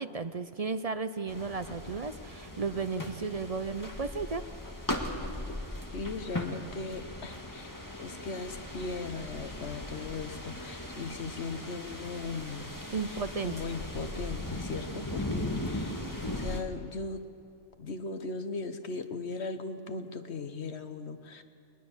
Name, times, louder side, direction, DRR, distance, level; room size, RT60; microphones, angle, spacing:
voice 1, 0.0-4.4 12.9-13.5, right 4 dB, 40° right, 10 dB, 0.6 m, -34 dB
sound 1, 1.3-16.6, left 1 dB, 15° left, 1.8 m, -38 dB
voice 2, 5.9-12.7 13.1-17.2 17.8-21.4, left 4 dB, 65° left, 8 dB, 1.4 m, -38 dB
21.0 x 20.5 x 7.2 m, 2.6 s
omnidirectional pair, 1.2 m